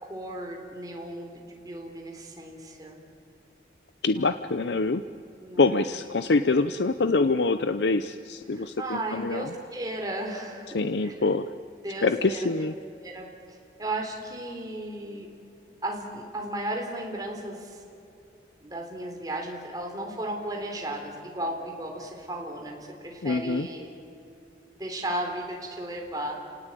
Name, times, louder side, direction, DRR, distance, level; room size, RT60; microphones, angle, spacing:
voice 1, 0.0-3.0 4.1-4.3 5.3-5.9 8.5-11.1 11.8-12.7 13.0-13.3 13.8-15.3 15.8-17.8 18.6-23.9 24.8-26.3, right 1 dB, 20° right, 1 dB, 3.8 m, -35 dB
voice 2, 4.0-5.0 5.6-9.5 10.7-11.5 12.0-12.7 23.2-23.7, left 3 dB, 85° left, 11 dB, 0.6 m, -25 dB
30.0 x 18.5 x 9.0 m, 2.7 s
head